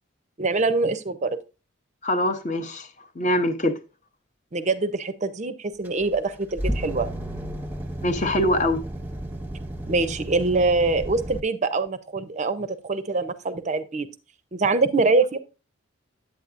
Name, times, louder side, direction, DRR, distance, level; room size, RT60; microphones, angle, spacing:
voice 1, 0.4-1.4 4.5-7.1 9.9-14.1 14.5-15.4, right 3 dB, 35° right, 0.5 m, -24 dB
voice 2, 2.0-2.9 3.2-3.8 8.0-8.8, left 1 dB, 35° left, 0.7 m, -23 dB
sound 1, 5.8-11.4, right 1 dB, 10° right, 0.8 m, -33 dB
8.7 x 8.0 x 2.5 m
head